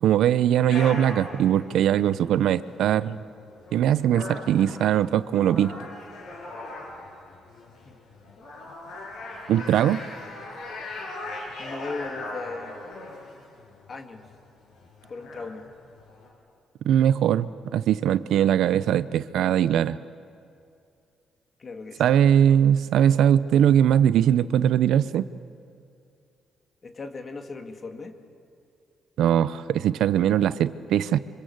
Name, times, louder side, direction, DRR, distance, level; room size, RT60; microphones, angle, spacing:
voice 1, 0.0-3.2 3.7-5.7 9.5-10.0 16.9-20.0 22.0-25.2 29.2-31.2, right 10 dB, 80° right, 15 dB, 0.7 m, -21 dB
sound 1, 0.7-16.3, left 2 dB, 75° left, 6.7 m, -40 dB
voice 2, 11.6-12.8 13.9-14.2 15.1-15.7 21.6-22.1 26.8-28.1, left 3 dB, 40° left, 6 dB, 2.5 m, -37 dB
26.0 x 25.0 x 8.1 m, 2.5 s
cardioid pair, 90°, 0 cm